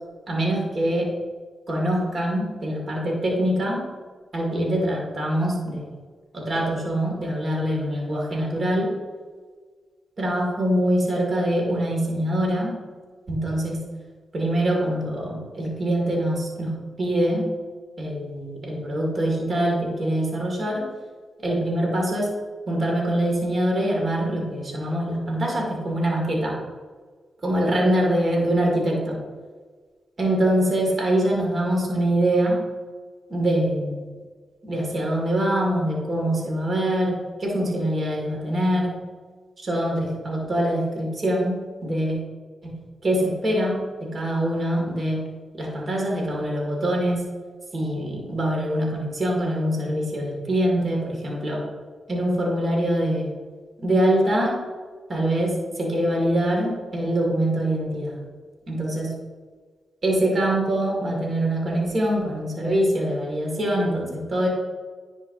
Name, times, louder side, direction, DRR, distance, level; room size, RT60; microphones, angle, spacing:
voice 1, 0.3-1.1 1.7-3.8 4.3-5.9 6.3-8.9 10.2-12.7 13.3-13.8 14.3-16.7 17.0-17.5 18.0-20.8 21.4-22.3 22.7-26.6 27.4-29.2 30.2-32.6 33.3-34.0 34.6-39.0 39.6-42.2 42.6-42.8 43.0-43.8 44.1-45.2 45.6-47.2 47.7-51.6 52.1-53.3 53.8-54.5 55.1-58.2 58.7-59.1 60.0-64.5, right 1 dB, 55° right, -2 dB, 2.2 m, -24 dB
10.0 x 5.0 x 2.7 m, 1.5 s
cardioid pair, 50°, 0 cm